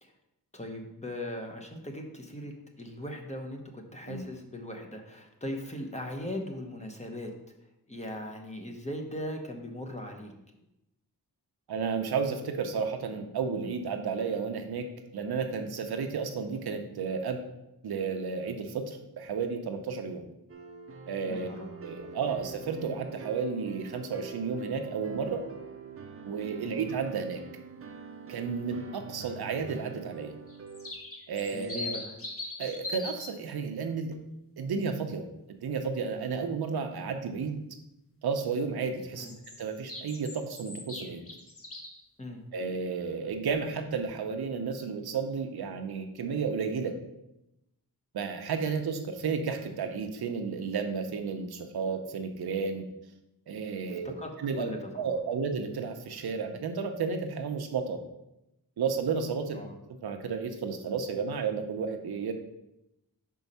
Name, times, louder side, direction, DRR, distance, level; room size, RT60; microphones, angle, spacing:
voice 1, 0.5-7.3 7.9-10.3 21.3-21.9 26.6-26.8 31.5-32.1 39.2-39.3 42.2-42.4 54.0-55.1 59.6-59.7, left 1 dB, 20° left, 2 dB, 1.0 m, -39 dB
voice 2, 11.7-14.9 15.1-17.4 17.8-20.2 21.1-21.5 21.8-25.4 26.2-27.4 28.3-30.3 31.3-32.0 32.6-34.2 34.6-37.6 38.2-39.3 39.6-41.2 42.5-46.9 48.1-52.8 53.5-54.1 54.4-54.7 55.0-58.0 58.8-59.6 60.0-62.3, right 5 dB, 90° right, 5 dB, 0.8 m, -32 dB
sound 1, 20.5-30.9, right 5 dB, 35° right, 0.7 m, -45 dB
sound 2, 30.5-33.3 39.2-42.0, left 2 dB, 35° left, 1.2 m, -40 dB
5.4 x 4.7 x 5.4 m, 0.89 s
wide cardioid pair, 105°, 37 cm